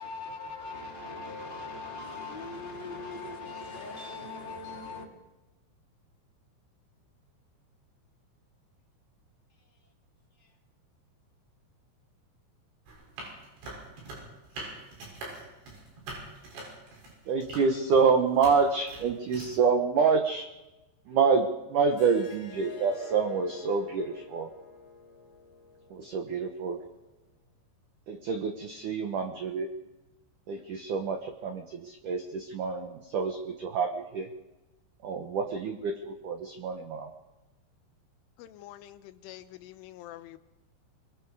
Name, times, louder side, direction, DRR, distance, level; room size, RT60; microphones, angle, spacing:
voice 1, 0.0-5.1 10.4-10.5, left 3 dB, 15° left, 2.4 m, -40 dB
sound 1, 12.9-19.6, right 2 dB, 65° right, 8.9 m, -43 dB
voice 2, 17.3-20.5 21.1-24.5 25.9-26.8 28.1-29.7 30.5-34.3 35.0-37.1, right 5 dB, 80° right, 1.8 m, -27 dB
Harp, 21.9-27.1, left 3 dB, 55° left, 5.5 m, -47 dB
voice 3, 38.4-40.4, left 14 dB, 85° left, 3.4 m, -46 dB
24.0 x 23.0 x 4.8 m
omnidirectional pair, 5.5 m